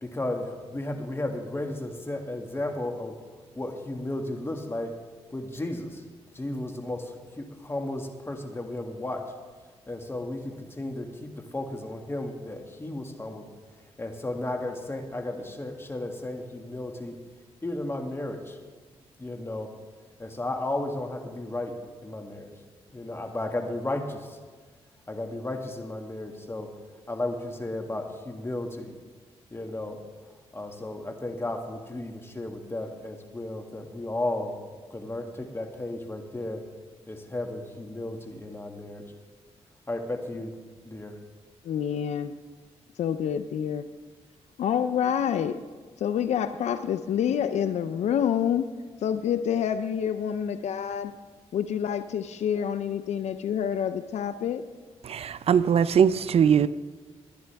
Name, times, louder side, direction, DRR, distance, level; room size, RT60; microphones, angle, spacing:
voice 1, 0.0-3.2 3.6-5.0 5.3-6.1 6.3-9.3 9.9-13.5 14.0-17.2 17.6-18.6 19.2-19.7 20.2-22.5 22.9-24.4 25.1-26.7 27.1-28.9 29.5-30.0 30.5-34.6 34.9-36.7 37.1-39.0 39.9-40.5 40.9-41.2, left 1 dB, 20° left, 4 dB, 2.0 m, -34 dB
voice 2, 41.6-42.4 43.0-43.8 44.6-45.6 46.0-48.7 49.0-51.1 51.5-54.6, left 8 dB, 80° left, 11 dB, 0.6 m, -27 dB
voice 3, 55.0-56.7, right 8 dB, 60° right, 15 dB, 0.5 m, -21 dB
21.0 x 10.5 x 3.5 m, 1.4 s
cardioid pair, 70°, 11 cm